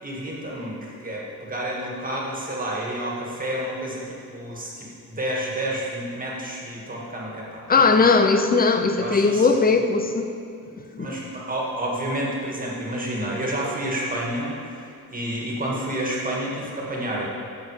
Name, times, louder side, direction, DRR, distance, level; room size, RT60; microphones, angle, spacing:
voice 1, 0.0-8.1 9.0-9.7 11.0-14.8 15.1-17.3, right 1 dB, 25° right, -3 dB, 1.9 m, -30 dB
voice 2, 7.7-10.3 10.9-11.1, left 4 dB, 25° left, 7 dB, 0.6 m, -19 dB
15.0 x 6.6 x 4.9 m, 2.4 s
wide cardioid pair, 170°, 36 cm